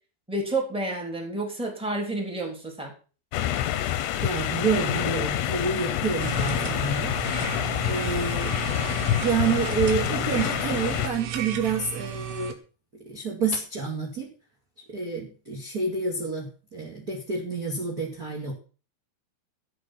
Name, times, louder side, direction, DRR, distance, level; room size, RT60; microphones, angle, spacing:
voice 1, 0.3-2.9, right 2 dB, ahead, 0 dB, 2.2 m, -30 dB
sound 1, 3.3-11.1, left 12 dB, 75° left, 2.6 m, -27 dB
voice 2, 4.2-7.5 7.8-8.6 9.2-12.5 13.0-14.3 14.9-18.5, right 4 dB, 35° right, 0 dB, 1.5 m, -28 dB
sound 2, 6.2-12.6, right 10 dB, 80° right, 3.6 m, -34 dB
12.5 x 8.4 x 5.8 m, 0.36 s
omnidirectional pair, 5.6 m